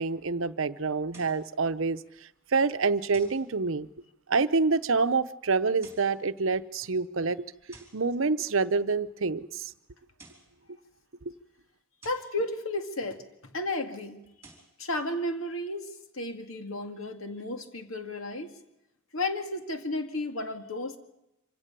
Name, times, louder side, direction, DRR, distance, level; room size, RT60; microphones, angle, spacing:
voice 1, 0.0-2.0 2.5-3.9 4.3-7.4 7.9-9.7, right 4 dB, 65° right, 0.8 m, -27 dB
sound 1, 1.1-1.5 3.1-3.5 5.7-6.2 7.7-8.1 10.0-10.5 12.0-12.4 14.2-14.8, right 3 dB, 15° right, 4.8 m, -53 dB
voice 2, 12.0-14.2 14.8-15.9 16.1-18.5 19.1-21.0, left 2 dB, 75° left, 2.1 m, -33 dB
26.0 x 16.5 x 6.8 m
head